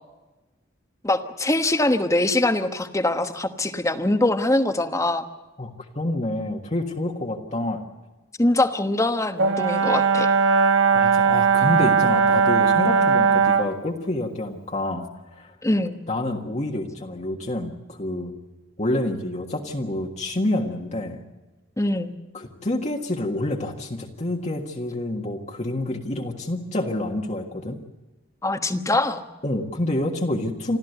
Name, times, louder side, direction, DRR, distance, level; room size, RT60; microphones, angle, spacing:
voice 1, 1.0-5.2 8.4-10.3 15.6-16.0 21.8-22.1 28.4-29.2, left 1 dB, 15° left, 8 dB, 1.2 m, -23 dB
voice 2, 5.6-7.8 10.9-15.5 16.1-18.3 18.8-21.2 22.3-27.8 29.4-30.8, left 1 dB, 35° left, 0 dB, 1.6 m, -28 dB
Brass instrument, 9.4-13.7, right 5 dB, 75° right, 1.3 m, -19 dB
27.5 x 13.5 x 8.0 m, 1.2 s
head